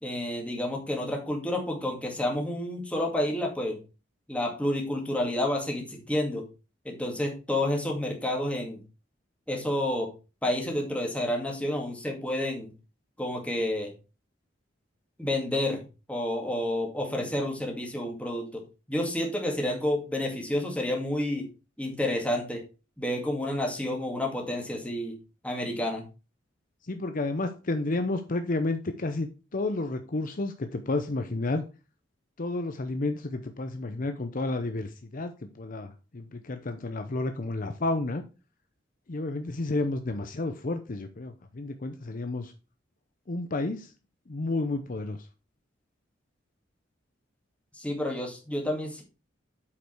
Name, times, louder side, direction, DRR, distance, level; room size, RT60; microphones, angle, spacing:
voice 1, 0.0-3.8 4.3-6.4 6.8-8.8 9.5-10.1 10.4-12.7 13.2-13.9 15.2-15.8 16.1-18.6 18.9-21.5 21.8-22.6 23.0-25.2 25.4-26.0 47.8-49.0, left 1 dB, 5° left, 0 dB, 2.2 m, -29 dB
voice 2, 26.9-31.6 32.4-38.2 39.1-42.5 43.3-43.9 44.3-45.2, left 2 dB, 45° left, 7 dB, 0.7 m, -31 dB
8.3 x 5.3 x 4.6 m, 0.31 s
head